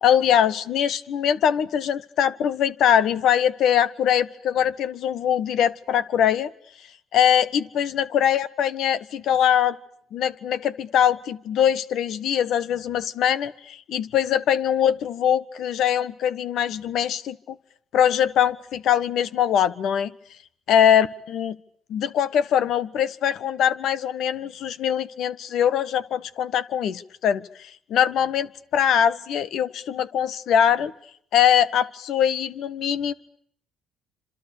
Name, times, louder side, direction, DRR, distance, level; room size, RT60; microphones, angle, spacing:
voice 1, 0.0-6.5 7.1-9.8 10.1-17.6 17.9-20.1 20.7-21.6 21.9-30.9 31.3-33.1, left 9 dB, 65° left, 14 dB, 1.5 m, -22 dB
29.0 x 27.0 x 6.9 m, 0.65 s
supercardioid pair, 65°, 0 cm